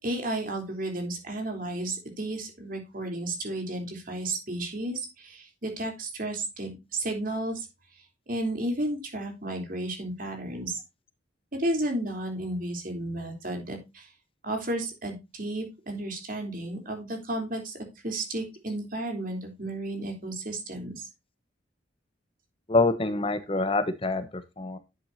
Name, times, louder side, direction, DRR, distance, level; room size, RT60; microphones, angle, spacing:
voice 1, 0.0-7.7 8.3-10.8 11.5-14.1 14.4-17.7 18.0-21.1, right 1 dB, 45° right, 3 dB, 3.6 m, -33 dB
voice 2, 22.7-24.8, left 3 dB, 30° left, 11 dB, 0.9 m, -26 dB
11.0 x 7.7 x 2.7 m, 0.25 s
head